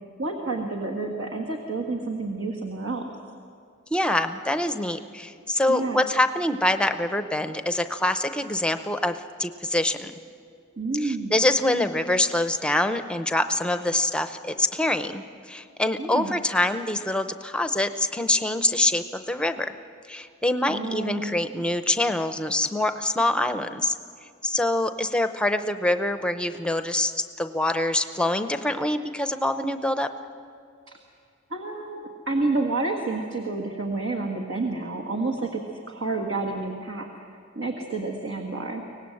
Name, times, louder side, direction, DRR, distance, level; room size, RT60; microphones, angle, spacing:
voice 1, 0.2-3.0 5.7-6.1 10.8-11.4 16.0-16.3 20.7-21.4 30.9-31.0 31.5-35.6 35.9-37.1 37.5-38.8, right 3 dB, 65° right, 0 dB, 1.6 m, -29 dB
voice 2, 3.9-10.2 11.0-19.7 20.1-23.9 24.4-27.1 27.4-30.1, left 1 dB, 5° left, 9 dB, 0.7 m, -25 dB
24.0 x 18.5 x 7.8 m, 2.3 s
head